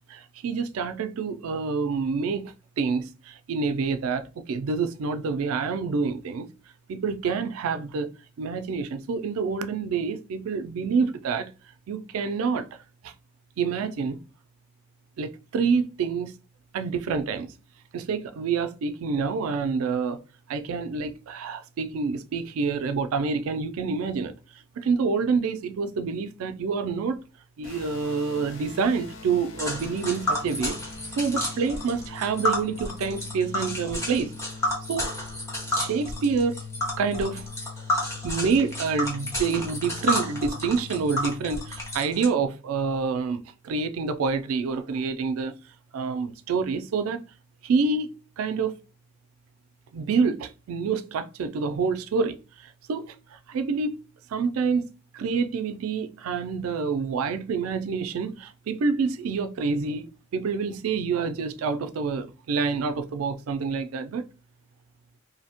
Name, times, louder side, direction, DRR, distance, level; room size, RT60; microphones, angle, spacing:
voice 1, 0.1-6.5 6.9-11.5 11.9-12.8 13.0-13.1 13.6-14.2 15.2-16.3 16.7-17.5 17.9-20.2 20.5-24.3 24.8-27.2 27.6-30.8 31.2-34.3 34.9-35.1 35.8-36.6 37.0-37.5 38.2-45.5 45.9-47.2 47.6-48.8 49.9-54.0 54.3-54.9 55.1-64.3, right 5 dB, 90° right, 0.3 m, -27 dB
sound 1, 27.6-42.0, left 5 dB, 70° left, 0.5 m, -42 dB
Tick, 29.6-42.2, left 1 dB, 15° left, 0.8 m, -30 dB
2.7 x 2.1 x 2.8 m
head